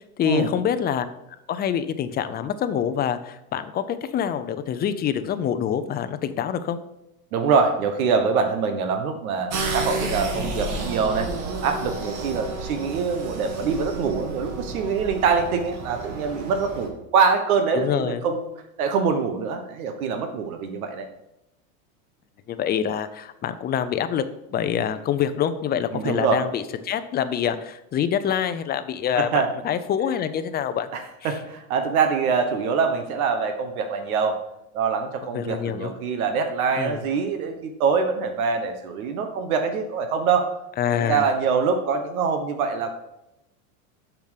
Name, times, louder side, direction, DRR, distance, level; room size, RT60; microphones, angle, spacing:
voice 1, 0.2-1.1 1.5-6.8 17.7-18.2 22.5-24.2 24.5-30.9 35.3-35.9 36.8-37.0 40.8-41.3, left 9 dB, 25° left, 11 dB, 0.6 m, -26 dB
voice 2, 7.3-11.3 11.6-18.5 18.8-21.1 25.9-26.4 29.1-29.5 30.9-34.4 34.7-40.6 41.0-42.9, right 5 dB, 80° right, 6 dB, 1.4 m, -24 dB
sound 1, 9.5-16.9, right 3 dB, 45° right, 1.9 m, -31 dB
7.0 x 5.9 x 6.6 m, 0.88 s
supercardioid pair, 130°, 43 cm